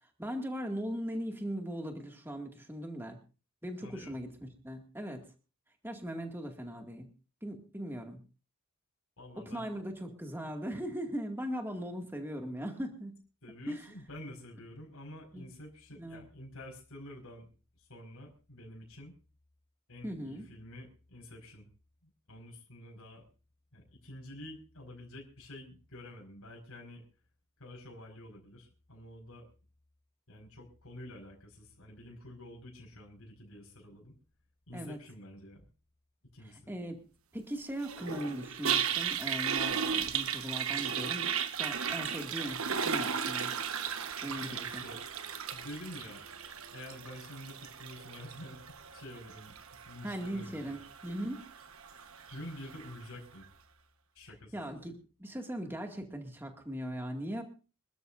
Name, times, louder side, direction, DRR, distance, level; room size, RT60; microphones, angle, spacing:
voice 1, 0.2-3.2 3.6-5.3 5.8-7.1 7.4-8.2 9.4-13.2 13.7-13.9 15.3-15.4 16.0-16.2 20.0-20.5 34.7-35.0 36.7-37.0 37.3-41.3 41.6-43.5 44.2-44.8 50.0-51.4 54.5-57.4, equal, 10° right, 3 dB, 2.1 m, -39 dB
voice 2, 3.8-4.2 9.2-9.7 13.4-17.5 17.8-19.1 19.9-21.7 22.0-23.2 23.7-27.0 27.6-29.5 30.3-34.1 34.7-35.6 36.3-36.7 44.3-46.3 46.7-50.8 52.3-53.5 54.1-54.6, left 1 dB, 75° left, -1 dB, 4.9 m, -48 dB
Toilet flush, 37.8-53.0, right 7 dB, 70° right, 1.2 m, -36 dB
27.0 x 13.0 x 2.6 m, 0.35 s
head